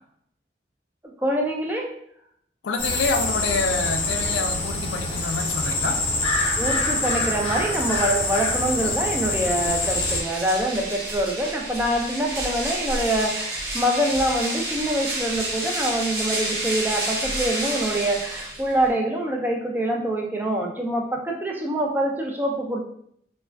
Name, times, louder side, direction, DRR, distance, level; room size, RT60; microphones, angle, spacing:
voice 1, 1.2-1.9 6.6-22.9, right 1 dB, 10° right, 0 dB, 0.4 m, -25 dB
voice 2, 2.6-6.0, left 4 dB, 85° left, 6 dB, 0.4 m, -27 dB
sound 1, 2.8-10.2, left 2 dB, 30° left, 0.6 m, -25 dB
sound 2, 9.3-18.9, right 1 dB, 55° right, 0.8 m, -30 dB
3.3 x 2.2 x 2.2 m, 0.68 s
head